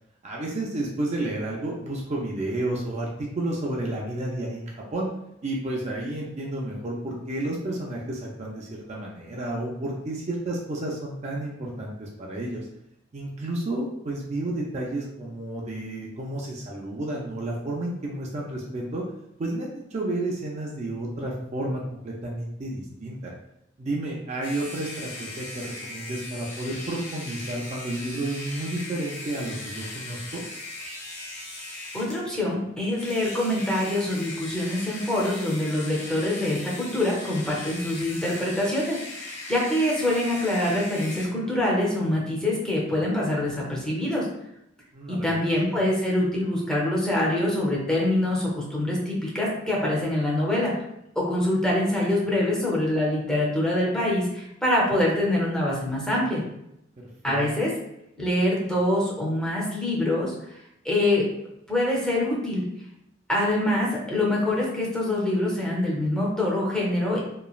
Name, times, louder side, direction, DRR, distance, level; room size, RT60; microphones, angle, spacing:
voice 1, 0.2-5.1 5.4-12.7 13.1-19.0 19.4-23.3 23.8-30.4 44.9-45.8 57.3-57.4, right 1 dB, 35° right, -2 dB, 0.4 m, -31 dB
sound 1, 24.4-32.2 32.9-41.3, left 2 dB, 35° left, 0.8 m, -39 dB
voice 2, 31.9-44.2 45.1-50.7 51.2-56.4 57.2-57.7 58.2-60.5 60.8-61.3 61.7-62.6 63.3-67.2, left 1 dB, 5° left, -4 dB, 0.6 m, -25 dB
3.0 x 2.3 x 2.3 m, 0.81 s
head